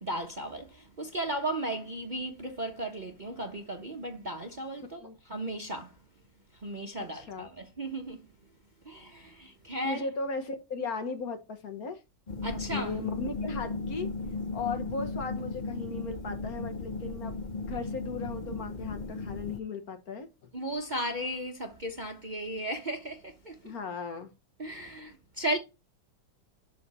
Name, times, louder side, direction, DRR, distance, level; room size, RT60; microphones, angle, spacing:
voice 1, 0.0-5.9 6.6-8.3 8.8-10.1 12.4-12.9 20.5-23.7 24.6-25.6, right 1 dB, 30° right, 0.9 m, -35 dB
voice 2, 7.0-7.5 9.8-12.0 12.7-14.1 14.5-17.4 17.7-20.3 23.6-24.3, left 4 dB, 55° left, 1.6 m, -37 dB
sound 1, 12.3-19.6, left 3 dB, 85° left, 0.4 m, -36 dB
11.5 x 4.2 x 4.2 m
omnidirectional pair, 2.0 m